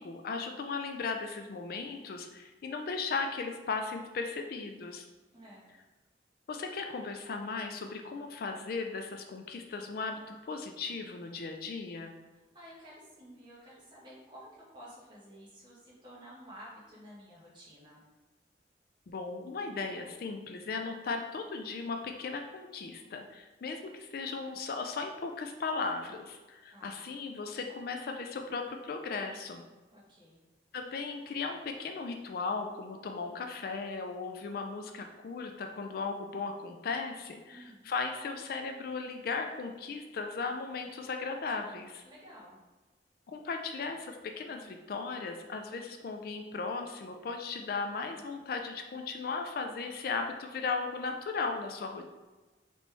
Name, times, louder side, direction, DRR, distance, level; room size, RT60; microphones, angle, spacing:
voice 1, 0.0-5.0 6.5-12.1 19.1-29.6 30.7-42.0 43.3-52.0, left 4 dB, 55° left, 4 dB, 0.3 m, -37 dB
voice 2, 5.3-5.7 12.5-18.0 26.7-27.0 29.9-30.4 37.5-37.9 42.0-42.6, equal, 25° right, -7 dB, 1.4 m, -52 dB
4.2 x 3.1 x 3.3 m, 1.2 s
head